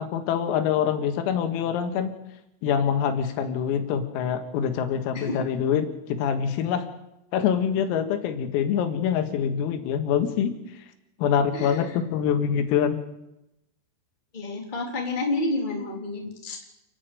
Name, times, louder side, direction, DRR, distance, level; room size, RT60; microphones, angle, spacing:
voice 1, 0.0-2.1 2.6-6.9 7.3-10.5 11.2-13.0, left 8 dB, 90° left, 7 dB, 4.3 m, -25 dB
voice 2, 5.1-5.5 11.5-12.0 14.3-16.6, left 2 dB, 15° left, 1 dB, 2.2 m, -30 dB
29.0 x 9.9 x 9.1 m, 0.89 s
omnidirectional pair, 5.9 m